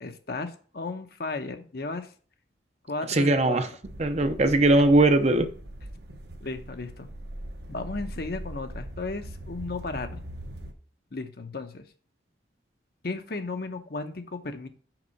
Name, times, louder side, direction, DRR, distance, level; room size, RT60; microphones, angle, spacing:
voice 1, 0.0-2.1 2.8-3.6 4.7-4.9 6.4-7.1 7.7-10.2 11.1-11.9 13.0-14.7, left 3 dB, 55° left, 0.8 m, -34 dB
voice 2, 3.1-3.7 4.0-5.5, right 2 dB, 35° right, 0.6 m, -20 dB
sound 1, 3.8-10.7, right 1 dB, 60° right, 1.0 m, -41 dB
5.9 x 5.4 x 5.3 m
head